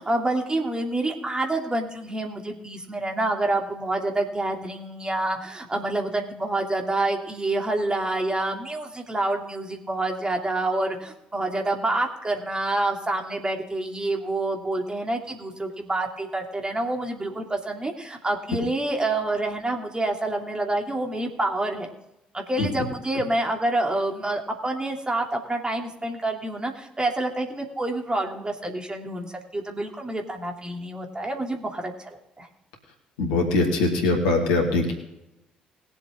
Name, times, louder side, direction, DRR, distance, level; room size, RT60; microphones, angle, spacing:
voice 1, 0.0-21.9 22.3-32.5, right 2 dB, 20° right, 2 dB, 2.8 m, -27 dB
voice 2, 33.2-35.0, left 3 dB, 70° left, 2 dB, 2.5 m, -22 dB
21.0 x 7.7 x 3.7 m, 0.89 s
figure-of-eight pair, 50°, 5 cm